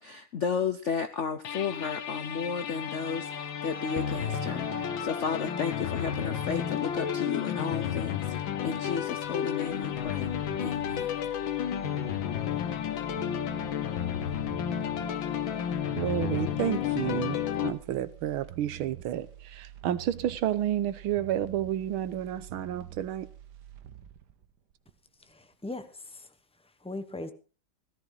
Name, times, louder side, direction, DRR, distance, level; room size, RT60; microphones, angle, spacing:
voice 1, 0.0-10.3 10.6-11.1, left 6 dB, 85° left, 0.6 m, -33 dB
sound 1, 1.4-17.7, left 10 dB, 65° left, 1.9 m, -32 dB
sound 2, 1.5-15.5, right 3 dB, 25° left, 7.0 m, -48 dB
sound 3, 9.2-25.3 25.7-25.8, right 11 dB, 60° right, 1.4 m, -47 dB
voice 2, 16.0-17.4 17.6-23.3, right 11 dB, 80° right, 1.7 m, -30 dB
voice 3, 25.2-27.3, left 2 dB, 5° left, 0.6 m, -40 dB
16.5 x 13.5 x 4.0 m
omnidirectional pair, 2.3 m